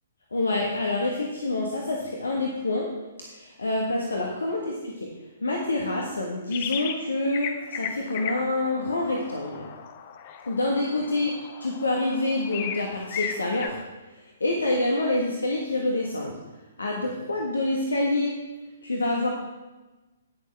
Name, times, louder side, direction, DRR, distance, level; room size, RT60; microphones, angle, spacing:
voice 1, 0.3-2.9 3.6-5.1 5.4-9.6 10.5-11.3 11.6-13.8 14.4-16.4 16.8-18.4 18.8-19.3, left 2 dB, 70° left, 0 dB, 1.5 m, -27 dB
sound 1, 6.5-7.1 7.3-13.7, left 8 dB, 35° left, 0.8 m, -36 dB
17.5 x 6.5 x 3.5 m, 1.1 s
figure-of-eight pair, 120°, 0 cm